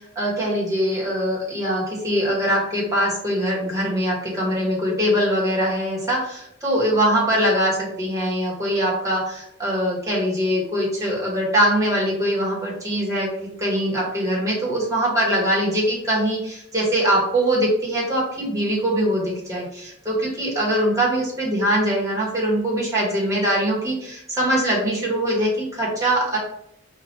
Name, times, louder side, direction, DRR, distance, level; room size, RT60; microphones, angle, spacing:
voice 1, 0.1-26.4, equal, 15° right, -5 dB, 1.4 m, -22 dB
4.8 x 2.5 x 2.8 m, 0.77 s
head